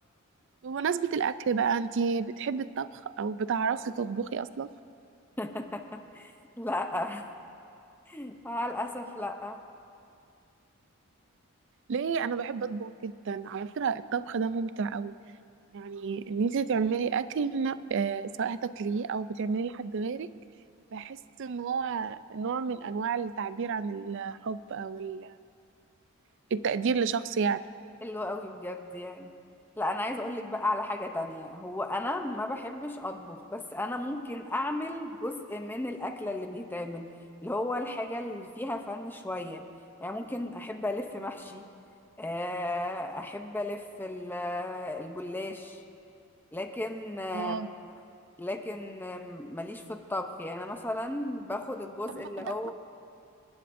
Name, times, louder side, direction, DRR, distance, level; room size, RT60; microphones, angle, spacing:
voice 1, 0.6-4.7 11.9-15.1 15.7-20.3 20.9-25.3 26.5-27.6 47.3-47.7 52.1-52.5, right 5 dB, 55° right, 15 dB, 0.4 m, -31 dB
voice 2, 5.4-6.3 6.6-7.3 8.1-9.6 28.0-29.3 29.8-37.1 37.4-39.7 40.0-41.6 42.2-45.8 46.5-47.9 48.4-52.7, left 1 dB, 10° left, 5 dB, 0.6 m, -34 dB
28.0 x 11.0 x 2.6 m, 2.5 s
head